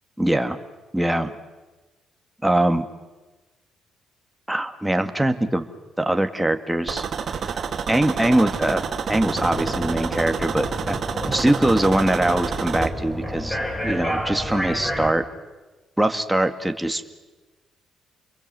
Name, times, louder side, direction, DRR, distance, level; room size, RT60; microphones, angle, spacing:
voice 1, 0.2-0.6 0.9-1.3 2.4-2.8 4.5-5.6 6.0-7.0 7.9-8.8 9.1-13.6 13.8-15.2 16.0-17.2, right 1 dB, 5° right, 7 dB, 2.1 m, -22 dB
sound 1, 6.9-12.9, right 6 dB, 50° right, 2.7 m, -29 dB
sound 2, 9.1-15.1, equal, 15° left, 6.8 m, -30 dB
30.0 x 22.5 x 7.7 m, 1.2 s
cardioid pair, 90°, 0 cm